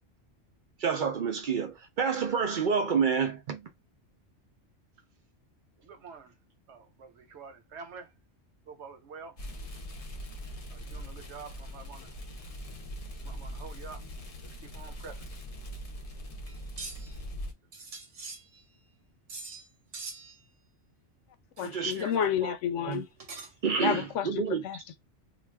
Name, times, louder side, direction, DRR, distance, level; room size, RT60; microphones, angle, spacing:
voice 1, 0.8-3.7 21.6-22.5 22.8-23.0 23.6-24.6, right 6 dB, 55° right, 0.6 m, -29 dB
voice 2, 5.8-6.3 6.7-8.1 8.7-9.4 10.7-12.1 13.2-14.0 14.6-15.3, right 5 dB, 70° right, 1.0 m, -47 dB
sound 1, 9.4-17.5, equal, 45° left, 0.5 m, -41 dB
sound 2, 16.5-17.2 17.7-18.9 19.3-19.7 19.9-20.5 21.6-22.2 22.9-23.7, right 3 dB, 90° right, 1.2 m, -43 dB
voice 3, 21.6-23.1 23.8-25.0, left 9 dB, 90° left, 0.9 m, -31 dB
2.5 x 2.3 x 3.3 m
omnidirectional pair, 1.2 m